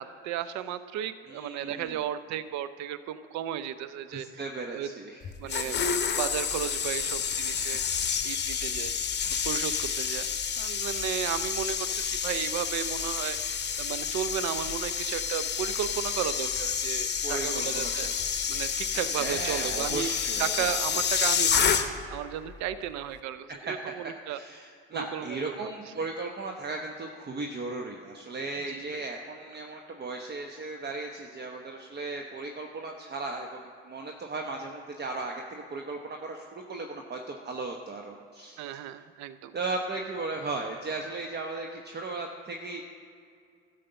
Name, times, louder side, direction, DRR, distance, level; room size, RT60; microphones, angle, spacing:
voice 1, 0.0-4.4 4.7-4.9 5.4-5.8 6.1-7.8 8.2-9.0 9.4-10.3 10.6-18.1 18.5-20.1 20.4-21.8 22.1-24.4 24.9-25.7 28.7-29.0 38.6-39.6, right 10 dB, 65° right, 13 dB, 0.6 m, -34 dB
voice 2, 1.3-2.0 4.1-5.2 15.7-15.8 17.2-18.1 19.2-20.8 24.3-38.8 39.5-42.8, right 3 dB, 35° right, 2 dB, 1.0 m, -36 dB
sound 1, 5.2-22.2 22.4-22.7, left 7 dB, 35° left, 1.0 m, -29 dB
12.5 x 5.2 x 6.8 m, 2.3 s
hypercardioid pair, 65°, 30 cm